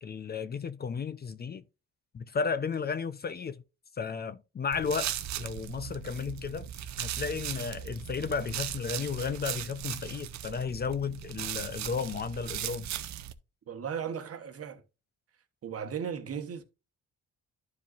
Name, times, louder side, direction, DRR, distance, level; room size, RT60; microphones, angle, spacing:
voice 1, 0.0-1.6 2.1-3.6 4.0-5.1 5.4-6.7 7.0-12.9, left 5 dB, 30° left, 0.5 m, -33 dB
sound 1, 4.7-13.3, right 11 dB, 65° right, 0.6 m, -38 dB
voice 2, 13.7-14.8 15.6-16.6, right 7 dB, 50° right, 1.1 m, -36 dB
11.5 x 4.9 x 2.5 m
cardioid pair, 90°, 30 cm